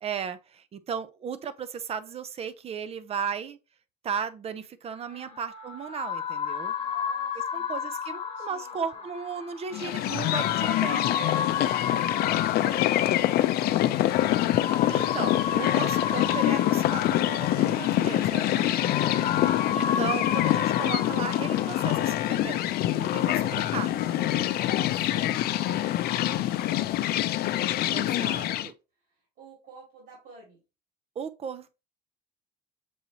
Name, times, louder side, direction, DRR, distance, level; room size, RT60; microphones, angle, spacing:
voice 1, 0.0-3.6 4.0-6.7 7.5-11.1 14.5-18.7 19.7-24.2 27.9-28.7 31.2-31.7, right 7 dB, 35° right, 0.5 m, -36 dB
sound 1, 5.0-22.0, left 7 dB, 35° left, 1.3 m, -33 dB
voice 2, 6.8-9.0 11.5-14.0 18.9-19.3 23.8-24.4 24.8-28.7 29.0-30.6, right 3 dB, 70° right, 3.1 m, -52 dB
sound 2, 9.7-28.7, left 14 dB, 65° left, 0.4 m, -25 dB
6.9 x 2.7 x 2.9 m
cardioid pair, 110°, 17 cm